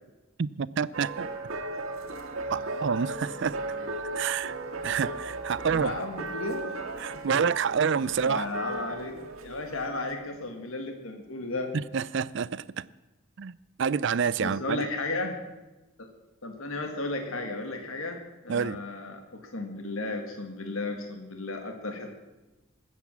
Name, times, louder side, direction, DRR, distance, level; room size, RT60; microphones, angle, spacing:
voice 1, 0.4-1.3 2.5-3.6 4.1-4.6 4.8-5.9 7.0-8.5 11.7-12.8 13.4-14.8 18.5-18.8, right 6 dB, 60° right, 0.4 m, -28 dB
sound 1, 0.9-10.1, right 2 dB, 85° right, 1.9 m, -36 dB
voice 2, 5.7-6.8 7.1-7.3 8.0-11.7 14.4-15.3 16.0-16.1 16.4-22.1, left 2 dB, 85° left, 1.8 m, -34 dB
20.0 x 8.3 x 7.2 m
head